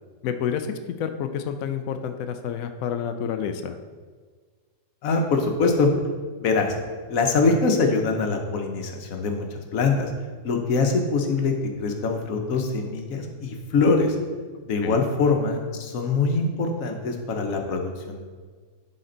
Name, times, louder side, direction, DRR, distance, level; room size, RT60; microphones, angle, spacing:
voice 1, 0.2-0.7 1.0-3.8 14.8-15.1, left 8 dB, 85° left, 7 dB, 0.7 m, -29 dB
voice 2, 5.0-5.9 6.4-6.7 7.1-9.5 9.7-10.1 10.4-11.5 11.8-14.2 14.6-18.2, left 4 dB, 55° left, 3 dB, 1.1 m, -23 dB
10.5 x 4.2 x 3.9 m, 1.5 s
omnidirectional pair, 2.0 m